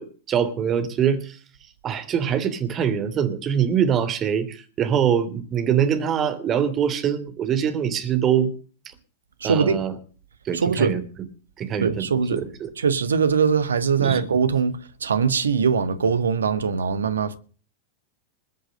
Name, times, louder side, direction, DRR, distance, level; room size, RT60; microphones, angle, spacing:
voice 1, 0.0-1.4 1.8-8.5 9.4-9.9 10.4-11.0 11.6-12.7 14.0-14.2, right 8 dB, 30° right, 3.1 m, -23 dB
voice 2, 9.4-9.8 10.5-11.0 11.8-12.4 12.8-17.4, right 6 dB, 70° right, 1.4 m, -22 dB
21.0 x 8.0 x 6.6 m
figure-of-eight pair, 90°, 0 cm